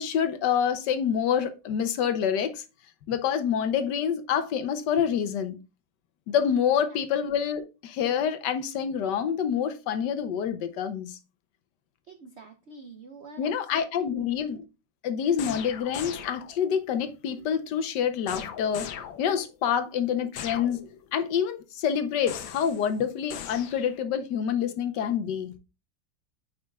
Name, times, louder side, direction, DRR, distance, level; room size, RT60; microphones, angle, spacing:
voice 1, 0.0-2.6 3.1-5.6 6.3-11.2 13.4-14.7 15.0-18.9 19.2-20.8 21.1-25.5, left 8 dB, 70° left, 1.3 m, -27 dB
voice 2, 12.1-14.3, right 3 dB, 65° right, 0.6 m, -47 dB
sound 1, 15.4-16.7 18.3-19.6 20.4-21.1 22.3-22.9 23.3-24.0, left 8 dB, 90° left, 1.5 m, -39 dB
9.0 x 5.4 x 2.3 m
omnidirectional pair, 2.0 m